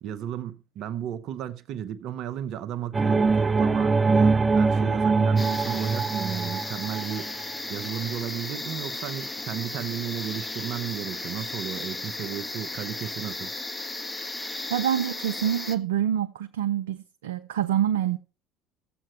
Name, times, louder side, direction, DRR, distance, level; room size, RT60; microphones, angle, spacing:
voice 1, 0.0-7.3 7.7-13.5, right 10 dB, 60° right, 0.8 m, -34 dB
sound 1, 2.9-7.4, right 4 dB, 20° right, 0.5 m, -23 dB
sound 2, 5.4-15.8, left 2 dB, 15° left, 1.3 m, -35 dB
voice 2, 14.7-18.2, right 10 dB, 85° right, 0.5 m, -26 dB
14.0 x 7.6 x 4.5 m
hypercardioid pair, 65°, 0 cm